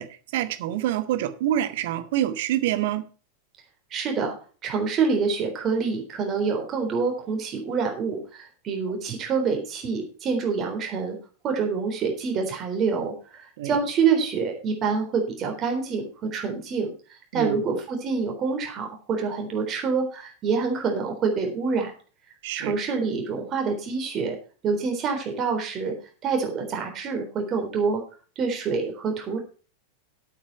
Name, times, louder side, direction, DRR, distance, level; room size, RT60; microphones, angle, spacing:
voice 1, 0.0-3.1 13.6-13.8 17.3-17.6 22.4-22.8, right 12 dB, 55° right, 1.1 m, -27 dB
voice 2, 3.9-4.3 4.6-11.2 11.4-16.9 17.3-21.9 22.6-24.4 24.6-25.9 26.2-28.0 28.4-29.4, right 5 dB, 30° right, 3.8 m, -26 dB
11.0 x 8.7 x 4.6 m
figure-of-eight pair, 90°, 0 cm